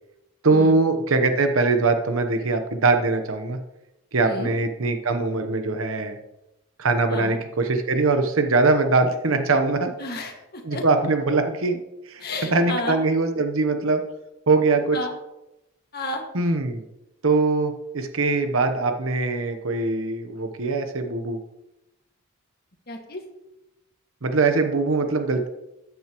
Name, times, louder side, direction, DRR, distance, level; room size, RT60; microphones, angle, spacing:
voice 1, 0.4-3.6 4.1-6.2 6.8-9.9 10.6-11.8 12.0-14.0 14.5-15.0 16.3-16.8 17.2-21.4 24.2-25.5, right 3 dB, 75° right, 6 dB, 0.9 m, -22 dB
voice 2, 10.0-10.8 12.2-13.0 14.9-15.1 15.9-16.2 22.9-23.2, left 2 dB, 45° left, 1 dB, 1.9 m, -31 dB
13.5 x 9.2 x 3.0 m, 0.93 s
head